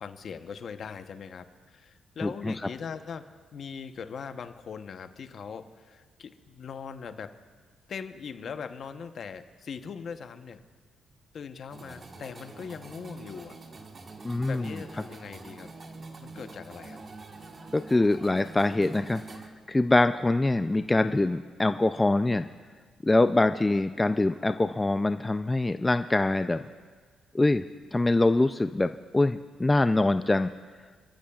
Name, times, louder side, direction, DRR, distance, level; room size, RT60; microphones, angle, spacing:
voice 1, 0.0-3.2 3.5-7.3 7.9-10.6 11.3-13.6 14.5-15.7 16.2-17.0, left 6 dB, 55° left, 8 dB, 0.9 m, -40 dB
voice 2, 2.2-2.5 14.2-14.7 17.7-19.2 19.7-22.5 23.0-26.6 27.3-30.5, left 2 dB, 15° left, 10 dB, 0.3 m, -24 dB
sound 1, 11.7-19.5, right 3 dB, 40° right, 1.4 m, -45 dB
29.0 x 13.5 x 2.4 m, 1.5 s
cardioid pair, 90°, 0 cm